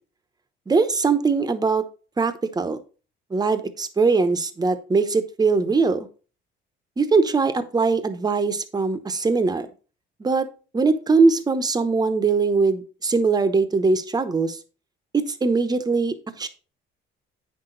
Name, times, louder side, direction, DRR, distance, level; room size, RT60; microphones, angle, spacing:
voice 1, 0.7-1.8 2.2-2.8 3.3-6.1 7.0-9.7 10.2-10.5 10.7-14.6 15.4-16.5, right 4 dB, 20° right, 10 dB, 0.9 m, -21 dB
8.7 x 5.9 x 3.9 m, 0.35 s
cardioid pair, 115°, 21 cm